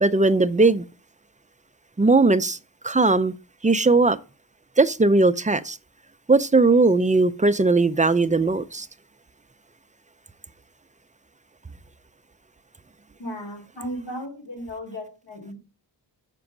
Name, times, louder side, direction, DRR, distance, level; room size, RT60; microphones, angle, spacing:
voice 1, 0.0-0.8 2.0-2.6 2.8-3.3 3.6-4.2 4.8-5.8 6.3-8.9, right 3 dB, 20° right, 0.4 m, -18 dB
voice 2, 13.2-15.6, equal, 70° left, 3.1 m, -35 dB
6.3 x 6.0 x 5.9 m
wide cardioid pair, 90°, 44 cm